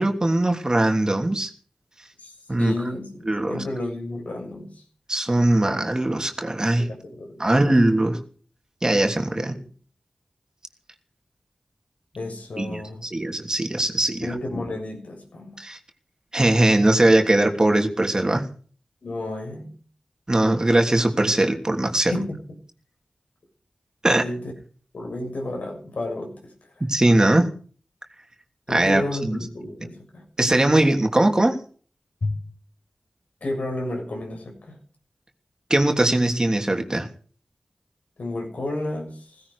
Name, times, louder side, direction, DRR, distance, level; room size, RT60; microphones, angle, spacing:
voice 1, 0.0-1.5 2.5-2.7 3.3-3.6 5.1-6.9 7.4-8.2 8.8-9.5 12.6-14.3 15.6-15.8 16.3-18.4 20.3-22.1 24.0-24.2 26.8-27.5 28.7-29.4 30.4-31.6 35.7-37.1, right 1 dB, 30° right, 4 dB, 3.0 m, -20 dB
voice 2, 2.2-4.8 6.8-7.6 9.4-9.6 12.1-13.1 14.2-15.6 19.0-19.7 22.1-22.4 24.0-24.5 24.9-26.5 28.7-30.2 32.2-32.5 33.4-34.8 38.2-39.4, left 2 dB, 80° left, 2 dB, 6.9 m, -32 dB
17.5 x 16.0 x 5.0 m, 0.43 s
wide cardioid pair, 65°, 2 cm